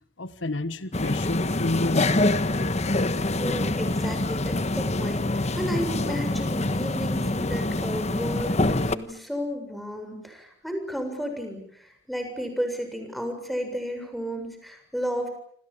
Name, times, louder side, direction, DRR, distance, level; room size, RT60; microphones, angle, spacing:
voice 1, 0.2-2.3, left 2 dB, 80° left, 13 dB, 1.4 m, -30 dB
sound 1, 0.9-9.0, left 2 dB, 35° left, 1.4 m, -25 dB
voice 2, 3.4-15.3, equal, ahead, 5 dB, 7.3 m, -33 dB
28.5 x 26.5 x 7.3 m, 0.64 s
head